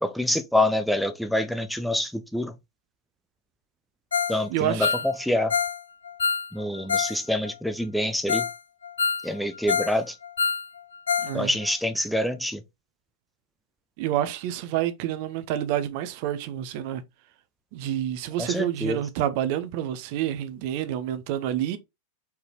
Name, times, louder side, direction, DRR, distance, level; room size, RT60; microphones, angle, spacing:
voice 1, 0.0-2.5 4.3-5.5 6.5-8.5 9.2-10.2 11.3-12.6 18.4-19.0, left 1 dB, ahead, 0.4 m, -26 dB
Ringtone, 4.1-4.4 4.7-7.2 7.4-7.5 8.0-8.1 8.3-8.6 8.8-10.0 10.2-11.4 11.6-11.7 12.2-12.3, left 6 dB, 70° left, 0.3 m, -26 dB
voice 2, 4.5-4.9 11.2-11.5 14.0-17.0 17.7-21.8, right 11 dB, 45° right, 0.7 m, -28 dB
4.3 x 3.9 x 3.0 m
figure-of-eight pair, 90°, 0 cm